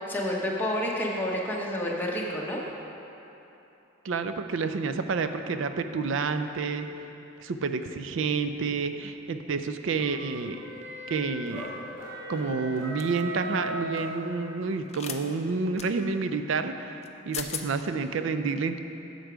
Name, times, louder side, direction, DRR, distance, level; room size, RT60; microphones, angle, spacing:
voice 1, 0.1-2.6, left 1 dB, 10° left, -3 dB, 0.8 m, -29 dB
voice 2, 4.0-6.9 7.4-10.6 11.1-11.7 12.3-17.0 17.3-18.8, right 4 dB, 65° right, 9 dB, 0.4 m, -29 dB
sound 1, 9.9-14.8, right 1 dB, 10° right, 2.0 m, -38 dB
sound 2, 13.0-13.2 14.9-15.2 15.8-15.9 17.0-17.1 17.3-17.7, left 9 dB, 30° left, 0.4 m, -36 dB
8.0 x 6.8 x 5.0 m, 3.0 s
head